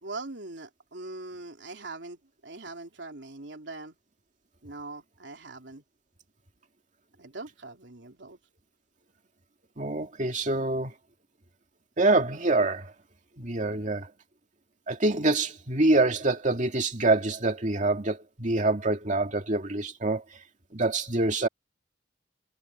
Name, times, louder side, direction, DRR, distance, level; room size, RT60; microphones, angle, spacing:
voice 1, 0.0-3.9 4.6-5.8 7.2-8.4, right 2 dB, 80° right, 3.0 m, -41 dB
voice 2, 9.8-10.9 12.0-12.9 13.4-14.1 14.9-20.2 20.7-21.5, right 2 dB, 45° right, 2.4 m, -25 dB
head